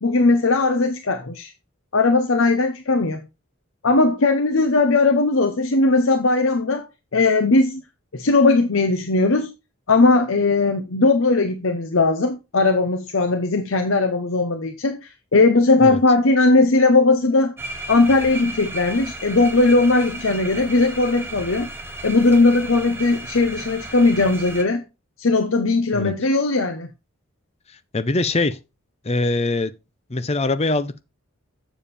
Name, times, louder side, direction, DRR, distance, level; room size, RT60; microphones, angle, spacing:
voice 1, 0.0-1.5 1.9-3.2 3.8-6.8 7.1-7.8 8.1-9.5 9.9-17.5 17.9-21.7 22.0-24.8 25.2-26.9, left 3 dB, 70° left, 0.8 m, -18 dB
sound 1, 17.6-24.6, right 2 dB, 10° right, 1.3 m, -34 dB
voice 2, 27.9-28.6 29.0-29.7 30.1-31.0, left 2 dB, 30° left, 0.6 m, -22 dB
7.2 x 7.1 x 4.2 m
head